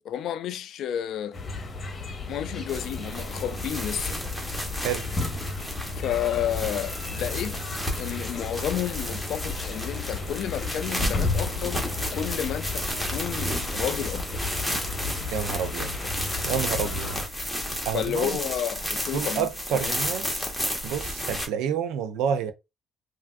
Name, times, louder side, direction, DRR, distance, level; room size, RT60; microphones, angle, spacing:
voice 1, 0.0-1.4 2.3-4.2 5.9-7.6 7.9-11.8 12.1-14.4 17.9-20.1, left 10 dB, 65° left, 0.3 m, -31 dB
sound 1, 1.3-17.3, left 3 dB, 30° left, 0.9 m, -33 dB
sound 2, 2.7-21.5, equal, 5° right, 1.1 m, -32 dB
voice 2, 15.3-15.9 16.4-17.2 17.8-18.4 19.1-20.5 20.8-22.5, right 8 dB, 80° right, 0.4 m, -29 dB
3.3 x 2.4 x 2.4 m
cardioid pair, 100°, 0 cm